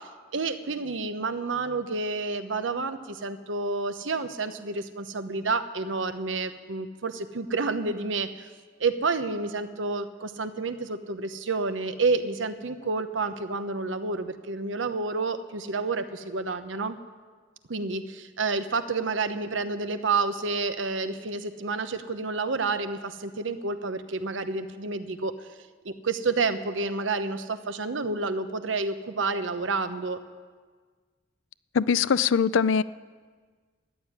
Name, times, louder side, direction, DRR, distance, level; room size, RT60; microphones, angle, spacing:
voice 1, 0.0-8.5 8.8-16.9 17.7-25.5 25.8-30.2, right 4 dB, 85° right, 9 dB, 0.9 m, -29 dB
voice 2, 31.7-32.8, left 6 dB, 85° left, 17 dB, 0.4 m, -22 dB
14.0 x 9.1 x 9.8 m, 1.5 s
head